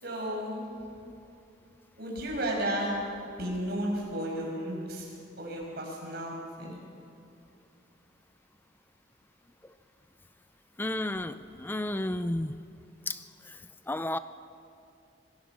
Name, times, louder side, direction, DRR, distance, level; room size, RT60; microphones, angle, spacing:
voice 1, 0.0-0.7 2.0-3.0 3.4-5.1 5.4-6.7, right 1 dB, 55° right, -1 dB, 5.9 m, -33 dB
voice 2, 10.8-12.5 13.1-13.2 13.5-13.6 13.9-14.2, left 1 dB, 10° left, 12 dB, 0.4 m, -32 dB
26.5 x 17.0 x 6.1 m, 2.5 s
head